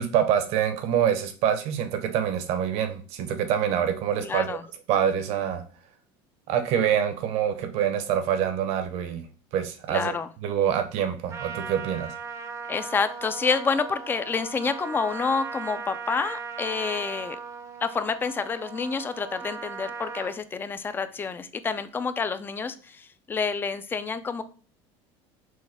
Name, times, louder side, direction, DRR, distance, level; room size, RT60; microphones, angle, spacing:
voice 1, 0.0-4.6 4.9-5.6 6.5-9.2 9.5-10.2 10.4-12.1, right 9 dB, 60° right, 8 dB, 0.9 m, -25 dB
voice 2, 4.2-4.6 9.9-10.3 12.7-17.4 17.8-24.4, left 5 dB, 15° left, 12 dB, 0.3 m, -28 dB
Trumpet, 11.3-20.4, right 5 dB, 25° right, 0.6 m, -38 dB
6.3 x 2.2 x 3.4 m, 0.39 s
cardioid pair, 140°, 12 cm